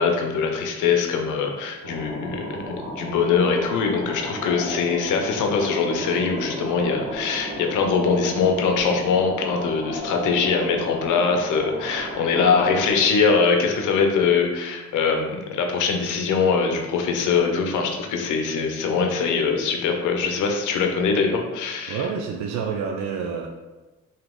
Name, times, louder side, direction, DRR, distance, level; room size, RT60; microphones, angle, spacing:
voice 1, 0.0-22.1, left 5 dB, 80° left, 3 dB, 0.6 m, -22 dB
sound 1, 1.8-12.9, equal, 85° right, 1.4 m, -34 dB
voice 2, 21.9-23.5, right 6 dB, 70° right, 2 dB, 0.4 m, -28 dB
3.0 x 2.8 x 3.6 m, 1.1 s
cardioid pair, 90°, 30 cm